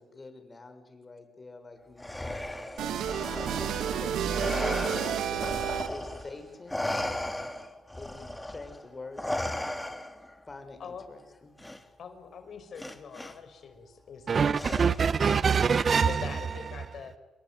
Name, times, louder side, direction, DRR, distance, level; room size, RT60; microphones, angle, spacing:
voice 1, 0.0-5.6 5.9-6.8 8.0-9.7 10.4-11.5, left 3 dB, 30° left, 6.7 m, -45 dB
Respiratory sounds, 2.0-6.3 6.7-10.3 11.6-11.8 12.8-13.3 14.5-15.2, left 1 dB, 10° left, 3.3 m, -35 dB
sound 1, 2.8-6.2, right 9 dB, 80° right, 2.7 m, -31 dB
voice 2, 12.0-15.0 16.1-17.2, left 6 dB, 65° left, 5.4 m, -43 dB
voice 3, 14.3-16.3, right 6 dB, 50° right, 1.0 m, -24 dB
27.5 x 22.5 x 9.6 m
cardioid pair, 75°, 0 cm